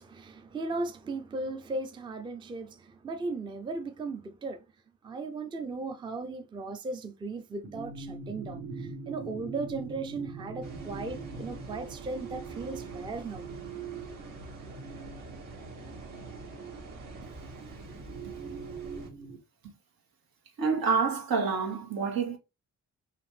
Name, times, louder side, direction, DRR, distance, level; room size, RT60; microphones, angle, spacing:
voice 1, 0.0-4.6 5.0-13.4 14.4-14.5, right 3 dB, 15° right, 0.4 m, -37 dB
sound 1, 7.6-19.4, right 5 dB, 40° right, 1.0 m, -43 dB
sound 2, 10.6-19.1, right 2 dB, 65° right, 1.8 m, -46 dB
voice 2, 20.6-22.4, right 5 dB, 80° right, 1.7 m, -27 dB
5.0 x 2.8 x 3.1 m
wide cardioid pair, 170°, 34 cm